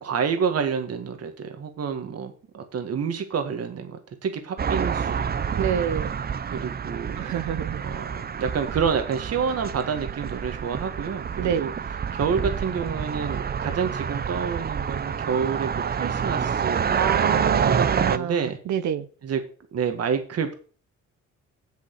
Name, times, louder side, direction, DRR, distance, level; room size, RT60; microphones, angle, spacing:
voice 1, 0.0-5.8 6.5-7.2 7.8-11.7 12.1-16.9 17.6-18.6 19.2-19.4 19.7-20.5, right 6 dB, 55° right, 1.8 m, -28 dB
sound 1, 4.6-18.2, right 7 dB, 30° right, 0.6 m, -27 dB
voice 2, 5.6-6.1 7.2-7.8 11.4-11.7 17.0-19.1, right 9 dB, 70° right, 0.9 m, -27 dB
7.5 x 7.3 x 5.9 m
cardioid pair, 90°, 30 cm